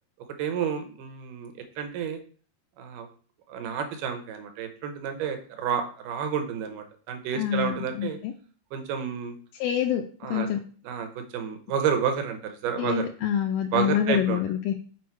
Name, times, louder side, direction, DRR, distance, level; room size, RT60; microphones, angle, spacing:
voice 1, 0.4-2.2 2.8-3.1 3.5-8.2 8.7-9.4 10.2-10.5 10.8-13.1 13.7-14.4, right 7 dB, 80° right, 6 dB, 2.5 m, -30 dB
voice 2, 7.3-8.3 9.6-10.6 12.8-14.7, left 10 dB, 80° left, 3 dB, 2.0 m, -27 dB
6.2 x 4.4 x 4.6 m, 0.43 s
omnidirectional pair, 3.8 m